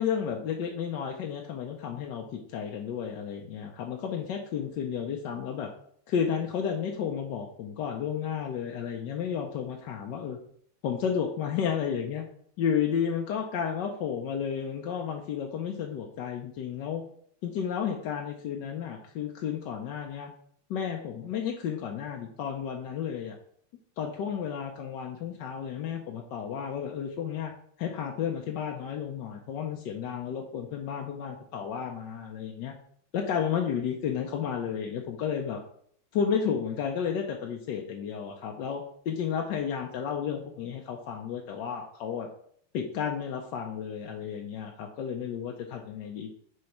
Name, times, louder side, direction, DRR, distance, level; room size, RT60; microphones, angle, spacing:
voice 1, 0.0-5.7 6.1-10.4 10.8-12.2 12.6-17.0 17.4-20.3 20.7-23.4 24.0-27.5 27.8-32.7 33.1-35.6 36.1-42.3 42.7-46.3, left 7 dB, 65° left, 1 dB, 1.2 m, -32 dB
6.4 x 4.0 x 5.9 m, 0.62 s
omnidirectional pair, 2.4 m